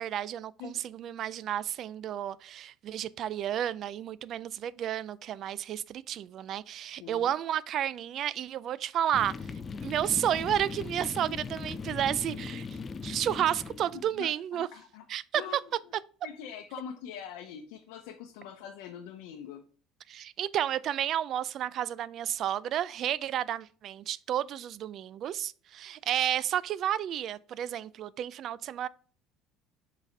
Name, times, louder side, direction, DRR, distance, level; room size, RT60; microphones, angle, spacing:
voice 1, 0.0-9.3 9.8-12.7 13.0-14.7 15.1-15.4 20.1-28.9, right 10 dB, 45° right, 0.3 m, -31 dB
voice 2, 7.0-7.3 13.9-15.0 15.3-15.7 16.2-19.6, left 8 dB, 85° left, 0.7 m, -43 dB
sound 1, 9.1-14.2, left 5 dB, 25° left, 0.5 m, -39 dB
7.2 x 4.1 x 3.3 m
cardioid pair, 140°, 0 cm